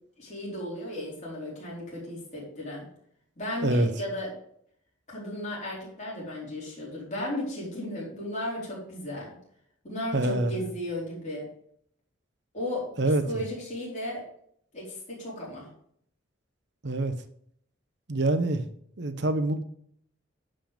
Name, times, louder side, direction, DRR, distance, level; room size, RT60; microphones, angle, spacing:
voice 1, 0.2-2.9 3.4-4.3 5.1-9.3 9.8-11.5 12.5-12.8 13.2-14.2 14.7-15.7, left 1 dB, 35° left, -5 dB, 4.5 m, -35 dB
voice 2, 10.1-10.6 13.0-13.2 16.8-17.1 18.1-18.7 19.0-19.6, right 2 dB, 55° right, 10 dB, 0.9 m, -25 dB
10.5 x 5.6 x 5.2 m, 0.67 s
head